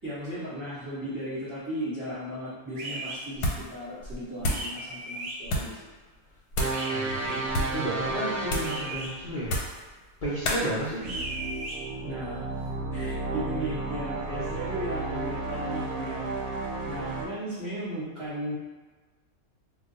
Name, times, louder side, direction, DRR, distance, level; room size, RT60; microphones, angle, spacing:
voice 1, 0.0-5.8 12.0-16.3 16.9-18.5, equal, 20° right, -11 dB, 0.9 m, -36 dB
sound 1, 2.7-3.2 4.5-5.3 6.7-7.4 8.6-9.1 11.0-11.8, right 2 dB, 60° right, 0.9 m, -37 dB
sound 2, 3.4-3.8 4.0-4.7 5.4-5.8 6.5-6.9 7.4-7.8 8.5-8.8 9.4-9.8 10.4-10.7, left 1 dB, 85° left, 1.2 m, -30 dB
sound 3, 6.6-9.2 11.0-17.3, right 3 dB, 80° right, 0.6 m, -32 dB
voice 2, 6.9-9.7 10.2-11.1 14.3-14.4, right 1 dB, 70° left, -9 dB, 0.4 m, -33 dB
2.4 x 2.3 x 3.8 m, 1.3 s
omnidirectional pair, 1.6 m